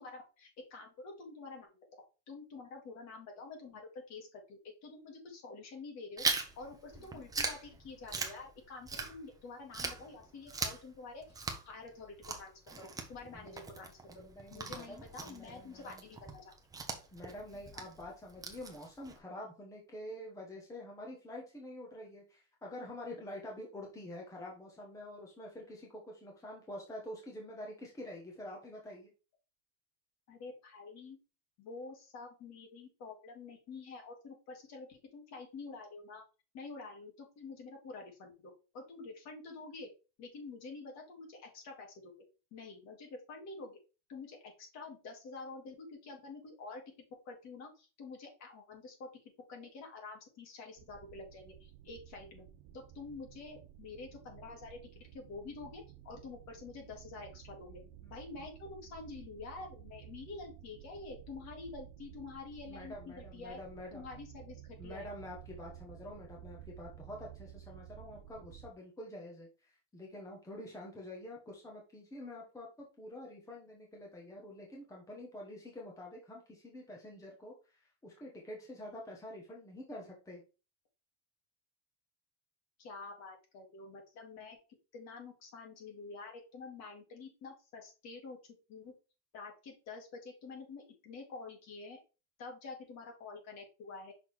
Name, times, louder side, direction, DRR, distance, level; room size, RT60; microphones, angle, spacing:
voice 1, 0.0-1.8 2.3-6.2 6.6-16.5 30.3-31.2 31.6-36.2 36.5-39.9 40.2-42.2 42.5-43.8 44.1-46.8 47.2-49.1 49.5-52.4 52.7-54.8 55.1-57.8 58.1-63.6 63.9-65.1 82.8-84.6 84.9-88.4 88.7-88.9 89.3-92.0 92.4-94.1, left 3 dB, 45° left, 1 dB, 2.6 m, -48 dB
Chewing mastication, 6.2-9.4 9.7-19.2, right 4 dB, 10° right, 0.8 m, -40 dB
voice 2, 14.1-16.1 17.1-29.1 58.0-58.5 62.6-64.0 64.8-80.4, left 1 dB, 10° left, -1 dB, 1.1 m, -47 dB
sound 1, 50.8-68.7, right 12 dB, 50° right, 0.7 m, -53 dB
6.0 x 3.8 x 4.6 m, 0.32 s
cardioid pair, 165°, 37 cm